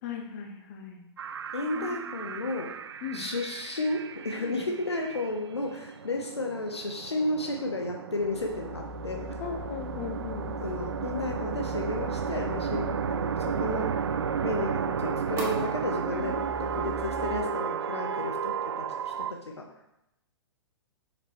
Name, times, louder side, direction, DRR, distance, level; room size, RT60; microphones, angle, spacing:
voice 1, 0.0-1.0 1.7-2.3 3.0-3.2 4.4-4.6 9.4-10.6 12.7-13.0 16.1-16.3, left 6 dB, 40° left, 1 dB, 1.6 m, -38 dB
sound 1, 1.2-19.3, right 7 dB, 65° right, 0.4 m, -33 dB
voice 2, 1.5-2.7 3.1-9.4 10.6-13.9 14.4-19.7, left 2 dB, 75° left, 2 dB, 1.1 m, -33 dB
sound 2, 8.2-17.4, left 2 dB, 20° right, 2.3 m, -42 dB
8.3 x 6.6 x 3.1 m, 0.85 s
figure-of-eight pair, 110°, 14 cm